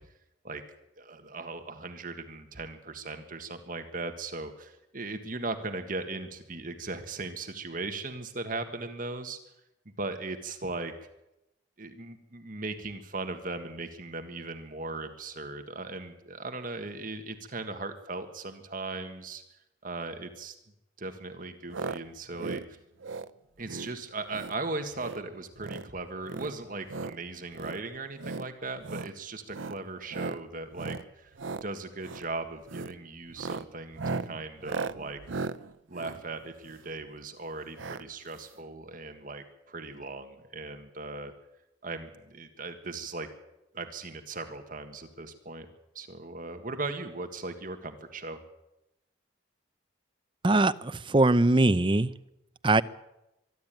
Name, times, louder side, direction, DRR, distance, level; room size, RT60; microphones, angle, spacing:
voice 1, 1.0-9.4 10.0-10.9 11.8-19.4 19.8-20.5 21.0-22.6 23.6-31.3 31.6-35.2 35.9-41.3 41.8-43.3 43.7-45.7 45.9-48.4, right 3 dB, 45° right, 7 dB, 1.7 m, -38 dB
sound 1, 21.7-22.0 22.3-22.7 23.0-23.3 23.6-23.9 24.3-24.6 24.9-25.2 25.5-25.9 26.2-27.2 27.5-27.8 28.2-28.5 28.8-29.1 29.5-29.8 30.1-30.4 30.7-31.0 31.3-31.7 32.0-32.3 32.7-32.9 33.3-37.0 37.8-38.0 38.3-38.4 38.6-38.7, right 4 dB, 85° right, 0.7 m, -37 dB
voice 2, 50.4-52.1 52.6-52.8, right 2 dB, 25° right, 13 dB, 0.6 m, -22 dB
24.0 x 12.0 x 9.1 m, 0.90 s
head